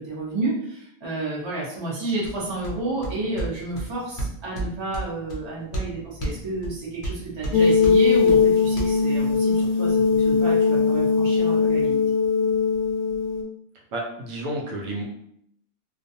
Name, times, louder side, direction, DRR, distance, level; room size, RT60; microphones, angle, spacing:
voice 1, 0.0-12.0, right 2 dB, 25° right, -6 dB, 0.6 m, -31 dB
sound 1, 2.2-8.8, right 2 dB, 55° left, 0.6 m, -34 dB
sound 2, 7.5-13.4, left 5 dB, 85° left, 1.1 m, -20 dB
voice 2, 13.7-15.0, right 1 dB, 80° right, -1 dB, 1.0 m, -31 dB
2.4 x 2.2 x 2.6 m, 0.71 s
omnidirectional pair, 1.5 m